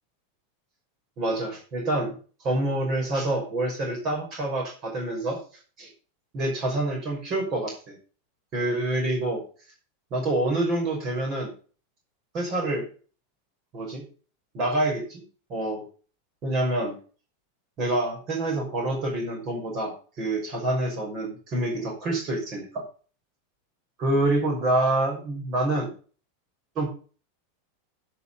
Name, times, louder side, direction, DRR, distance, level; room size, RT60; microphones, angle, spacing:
voice 1, 1.2-2.1 2.4-5.4 5.8-5.9 6.3-8.0 8.5-9.4 10.1-11.5 12.3-12.8 13.7-14.0 14.5-15.2 15.5-15.8 16.4-17.0 17.8-22.8 24.0-25.9 26.8-26.9, right 1 dB, 30° right, 0 dB, 5.7 m, -27 dB
16.0 x 6.0 x 5.5 m, 0.38 s
supercardioid pair, 165°, 0 cm